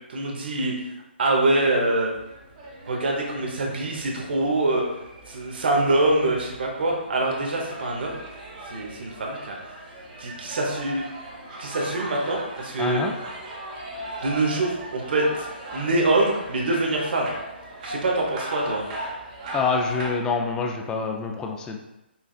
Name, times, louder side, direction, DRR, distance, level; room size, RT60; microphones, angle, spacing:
voice 1, 0.1-0.7 1.2-2.1 2.9-4.9 5.3-8.1 8.7-9.6 10.2-11.0 11.6-13.0 14.2-15.5 15.7-17.3 17.8-18.8, right 2 dB, 60° right, -1 dB, 0.9 m, -24 dB
sound 1, 2.1-20.1, right 1 dB, 35° right, 0.9 m, -38 dB
voice 2, 12.8-13.1 19.5-21.8, left 5 dB, 10° left, 2 dB, 0.3 m, -26 dB
5.6 x 2.5 x 2.3 m, 0.94 s
figure-of-eight pair, 140°, 6 cm